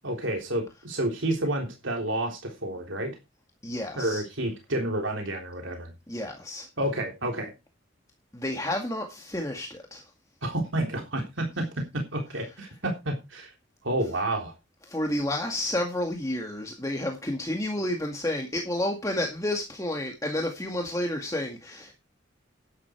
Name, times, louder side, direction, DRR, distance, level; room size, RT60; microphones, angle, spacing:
voice 1, 0.0-3.2 4.0-5.9 6.8-7.5 10.4-11.7 11.9-13.5 13.8-14.5, right 1 dB, 75° right, 3.5 m, -30 dB
voice 2, 3.6-4.2 6.1-6.7 8.3-10.0 14.9-21.9, left 1 dB, 15° left, 2.0 m, -30 dB
12.0 x 10.5 x 4.5 m
head